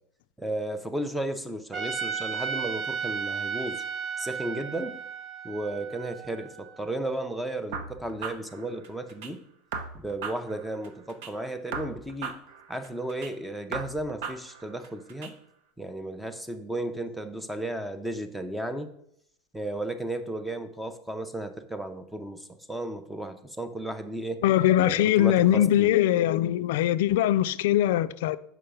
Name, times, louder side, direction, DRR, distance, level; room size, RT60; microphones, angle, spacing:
voice 1, 0.4-3.8 4.2-5.0 5.4-9.4 9.9-12.4 12.7-15.4 15.8-18.9 19.5-24.4 24.8-25.9, right 1 dB, ahead, 0.5 m, -34 dB
Trumpet, 1.7-6.9, right 7 dB, 30° right, 0.9 m, -34 dB
sound 1, 7.7-9.3 9.7-11.3 11.7-13.3 13.7-15.3, right 5 dB, 70° right, 0.8 m, -38 dB
voice 2, 24.4-28.4, left 12 dB, 75° left, 0.3 m, -22 dB
5.7 x 4.7 x 5.1 m
supercardioid pair, 155°, 0 cm